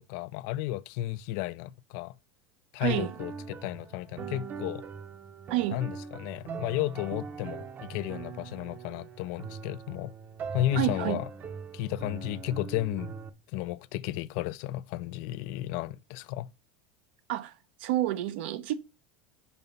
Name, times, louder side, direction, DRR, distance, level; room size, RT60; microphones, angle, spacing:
voice 1, 0.0-2.1 2.7-4.8 5.7-10.1 10.5-11.3 11.7-13.2 13.5-16.5, left 14 dB, 65° left, 0.4 m, -33 dB
voice 2, 2.8-3.1 5.5-5.8 10.8-11.2 17.3-18.7, right 15 dB, 75° right, 0.7 m, -29 dB
sound 1, 2.9-13.3, right 5 dB, 35° right, 0.8 m, -41 dB
5.5 x 4.5 x 5.3 m
supercardioid pair, 110°, 6 cm